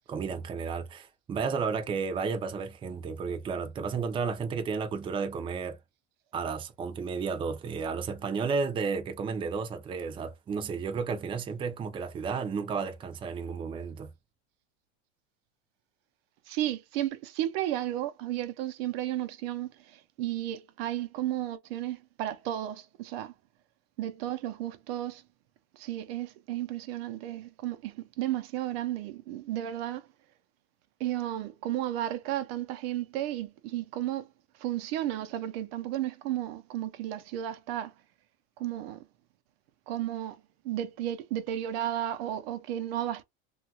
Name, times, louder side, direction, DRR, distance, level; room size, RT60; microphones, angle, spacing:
voice 1, 0.1-5.8 6.3-14.1, right 5 dB, 15° right, 0.4 m, -32 dB
voice 2, 16.5-23.3 24.0-25.2 25.7-30.1 31.0-34.3 34.6-37.9 38.6-39.1 39.9-40.4 40.6-43.2, right 12 dB, 75° right, 0.6 m, -33 dB
2.8 x 2.3 x 2.8 m
supercardioid pair, 140°, 30 cm